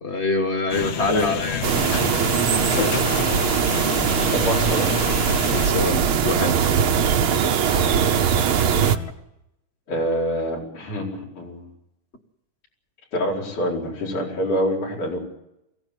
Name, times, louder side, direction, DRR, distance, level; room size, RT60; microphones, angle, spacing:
voice 1, 0.0-1.8 5.5-6.5, left 3 dB, 30° left, 5 dB, 1.5 m, -25 dB
sound 1, 0.7-5.7, left 7 dB, 65° left, 2.2 m, -30 dB
sound 2, 1.5-9.1, left 4 dB, 50° left, 2.3 m, -32 dB
sound 3, 1.6-9.0, right 8 dB, 60° right, 1.5 m, -21 dB
voice 2, 4.1-4.9 9.9-11.7 13.1-15.2, equal, 85° left, -2 dB, 6.2 m, -26 dB
23.0 x 16.5 x 9.2 m, 0.84 s
omnidirectional pair, 3.4 m